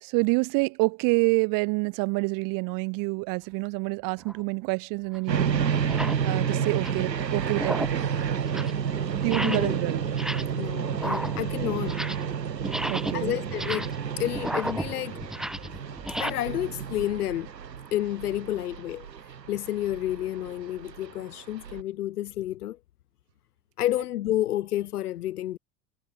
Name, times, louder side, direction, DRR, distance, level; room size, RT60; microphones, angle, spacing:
voice 1, 0.0-5.6 6.2-8.1 9.0-10.0 12.9-13.4, right 30 dB, 40° right, 1.7 m, -27 dB
sound 1, 4.2-4.4 5.1-5.2 5.8-6.3 6.6-7.1 7.5-8.1 8.4-8.8 9.2-9.8 10.1-10.6 10.9-12.3 12.6-16.3, right 1 dB, ahead, 0.7 m, -33 dB
sound 2, 5.3-21.8, right 7 dB, 80° right, 1.5 m, -30 dB
voice 2, 9.4-9.8 10.6-12.0 13.1-15.2 16.1-17.5 17.9-19.1 19.5-22.8 23.8-25.6, left 13 dB, 65° left, 2.0 m, -30 dB
figure-of-eight pair, 85°, 49 cm